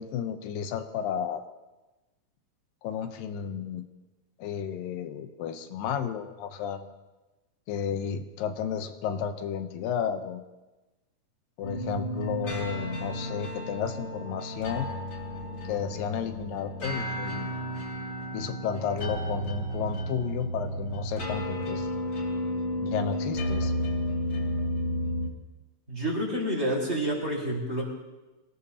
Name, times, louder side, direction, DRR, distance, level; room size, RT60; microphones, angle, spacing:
voice 1, 0.0-1.5 2.8-3.8 4.4-6.9 7.7-10.4 11.6-14.9 15.6-17.5 18.3-21.9 22.8-23.7, left 8 dB, 85° left, 7 dB, 2.6 m, -32 dB
sound 1, 11.6-25.3, equal, 40° left, 3.0 m, -32 dB
voice 2, 25.9-27.8, right 1 dB, 20° right, -3 dB, 4.2 m, -28 dB
26.0 x 18.0 x 2.9 m, 1.1 s
omnidirectional pair, 3.9 m